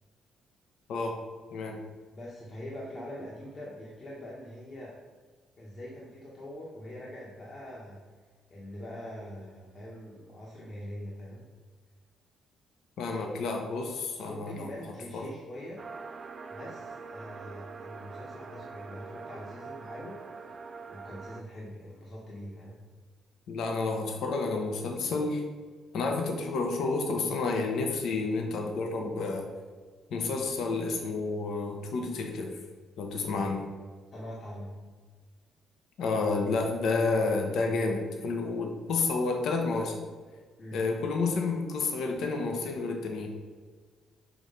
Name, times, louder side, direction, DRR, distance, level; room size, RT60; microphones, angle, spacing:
voice 1, 0.9-1.2 1.5-1.8 13.0-14.7 15.1-15.3 23.5-25.4 25.9-29.5 30.1-32.6 33.0-33.7 36.0-40.0 40.7-43.3, left 3 dB, 75° left, 3 dB, 0.8 m, -30 dB
voice 2, 2.1-5.0 5.6-8.0 8.5-11.4 13.0-13.3 14.2-15.8 16.5-22.8 34.1-34.8 40.6-40.9, equal, 40° left, -4 dB, 1.2 m, -43 dB
sound 1, 15.8-21.4, right 4 dB, 40° right, 0.5 m, -44 dB
6.1 x 3.2 x 5.2 m, 1.5 s
cardioid pair, 90°, 0 cm